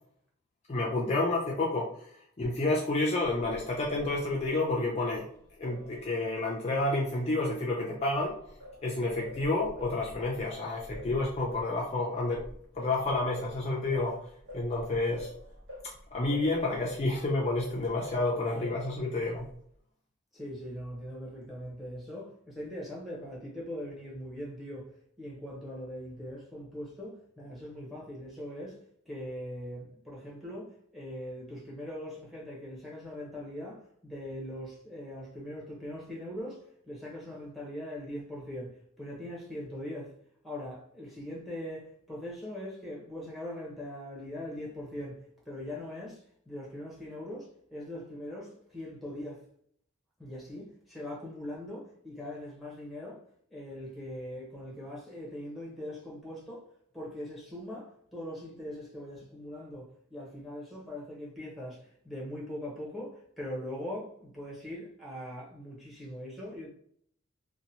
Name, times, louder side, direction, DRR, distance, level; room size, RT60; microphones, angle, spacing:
voice 1, 0.7-2.1 2.4-5.3 5.6-8.3 8.8-12.4 12.7-14.2 14.5-15.3 16.1-19.5, left 2 dB, 30° left, 0.4 m, -30 dB
Singing, 3.2-7.6 8.0-18.3 18.6-19.6, equal, 60° right, 0.9 m, -47 dB
voice 2, 20.3-24.9 25.2-28.8 29.1-40.1 40.4-45.2 45.4-49.4 50.2-53.2 53.5-56.6 56.9-61.8 62.0-66.7, left 1 dB, ahead, 0.8 m, -41 dB
2.9 x 2.1 x 2.7 m
head